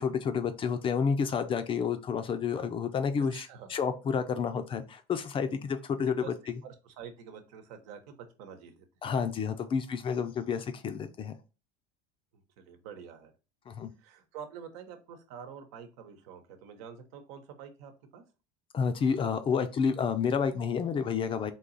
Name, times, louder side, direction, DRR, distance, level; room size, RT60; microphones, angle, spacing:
voice 1, 0.0-6.3 9.0-11.3 13.7-13.9 18.7-21.5, left 6 dB, 25° left, 9 dB, 0.4 m, -30 dB
voice 2, 3.3-3.7 6.1-9.1 12.3-13.3 14.0-18.2, right 7 dB, 75° right, 7 dB, 1.0 m, -47 dB
3.9 x 2.9 x 4.0 m, 0.32 s
supercardioid pair, 140°, 21 cm